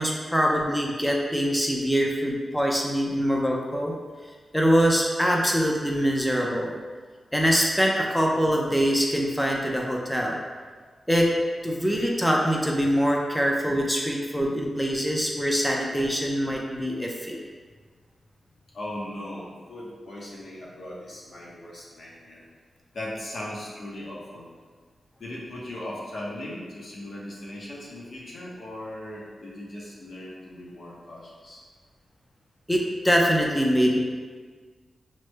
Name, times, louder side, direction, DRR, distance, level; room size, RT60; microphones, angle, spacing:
voice 1, 0.0-3.9 4.5-6.7 7.3-10.4 11.1-11.3 11.6-17.4 32.7-34.0, equal, 5° left, -1 dB, 0.7 m, -24 dB
voice 2, 18.7-22.4 22.9-24.4 25.2-31.6, left 1 dB, 70° left, -5 dB, 1.0 m, -38 dB
7.4 x 3.1 x 2.2 m, 1.5 s
wide cardioid pair, 85°, 0 cm